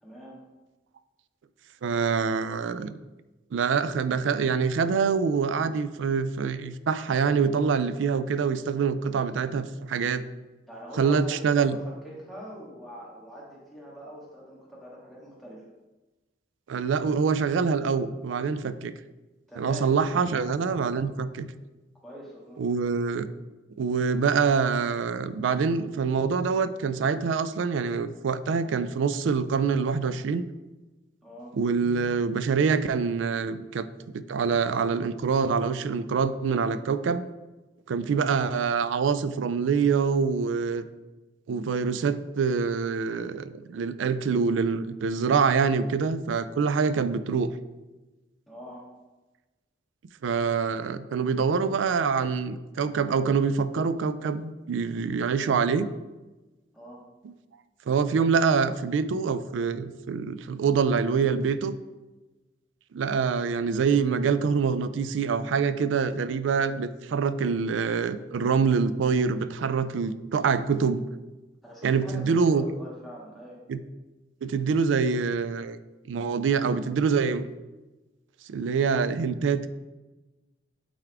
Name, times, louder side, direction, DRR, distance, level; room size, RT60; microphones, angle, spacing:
voice 1, 0.0-0.4 10.7-15.6 19.5-19.9 21.9-22.6 31.2-31.5 48.5-48.8 56.7-57.0 71.6-73.6, equal, ahead, -6 dB, 1.5 m, -43 dB
voice 2, 1.8-3.0 3.5-10.2 11.0-11.8 16.7-18.9 19.6-21.5 22.6-23.3 23.8-30.4 31.5-33.9 34.1-37.2 37.9-40.8 41.5-47.5 50.2-55.9 57.2-57.3 57.9-61.8 62.9-71.0 71.8-72.6 73.7-73.8 74.4-75.8 76.1-77.5 78.5-79.7, right 5 dB, 85° right, 14 dB, 0.4 m, -25 dB
8.9 x 3.5 x 3.4 m, 1.1 s
head